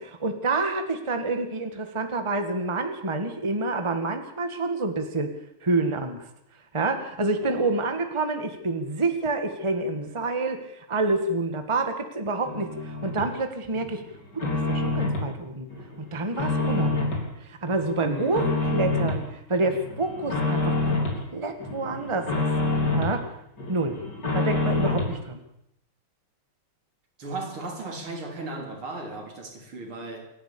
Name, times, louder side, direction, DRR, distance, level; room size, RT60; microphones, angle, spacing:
voice 1, 0.0-5.3 5.6-6.3 6.7-14.0 14.3-15.7 16.1-21.0 21.3-22.5 22.9-23.3 23.7-24.0 24.3-25.4, right 2 dB, 15° right, 1.7 m, -28 dB
sound 1, 12.5-13.3 13.7-15.3 15.7-17.3 17.7-19.2 19.6-21.2 21.6-23.2 23.6-25.2, left 2 dB, 50° left, 4.7 m, -27 dB
voice 2, 18.0-18.7 27.2-30.3, right 3 dB, 75° right, 4.5 m, -36 dB
28.0 x 11.5 x 8.7 m
omnidirectional pair, 2.4 m